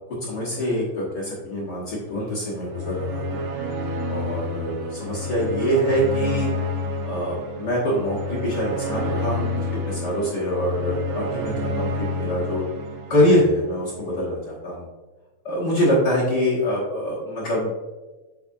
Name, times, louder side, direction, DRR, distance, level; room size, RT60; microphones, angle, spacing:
voice 1, 0.3-3.4 4.1-6.5 7.0-12.6 13.1-14.9 15.4-17.7, equal, 55° left, -7 dB, 1.1 m, -24 dB
sound 1, 2.5-13.9, left 1 dB, 90° right, 2.6 m, -29 dB
8.1 x 4.7 x 2.7 m, 1.2 s
omnidirectional pair, 3.8 m